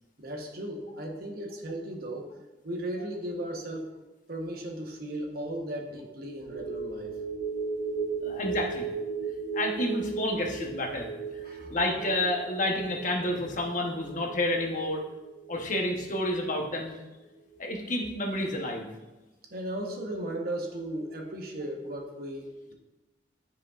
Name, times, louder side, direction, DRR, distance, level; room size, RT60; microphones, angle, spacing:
voice 1, 0.2-2.3 2.6-3.9 4.3-7.2 11.4-11.8 19.5-22.7, right 1 dB, 55° right, 2 dB, 1.0 m, -36 dB
sound 1, 6.4-17.0 17.4-17.5, right 5 dB, 75° right, 1.3 m, -37 dB
voice 2, 8.2-8.9 9.5-11.1 11.5-15.0 15.5-17.0 17.6-18.9, left 1 dB, 45° left, 1 dB, 1.0 m, -30 dB
10.0 x 5.2 x 2.4 m, 1.1 s
head